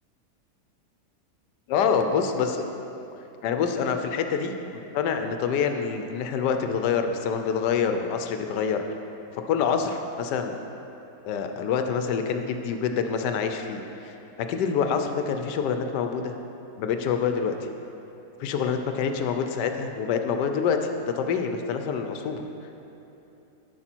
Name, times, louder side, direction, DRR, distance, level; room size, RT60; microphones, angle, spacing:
voice 1, 1.7-2.7 3.4-4.5 4.9-8.8 9.5-10.5 11.2-16.3 16.8-17.5 18.4-22.4, left 6 dB, 90° left, 6 dB, 1.3 m, -26 dB
13.0 x 5.6 x 4.5 m, 3.0 s
omnidirectional pair, 1.8 m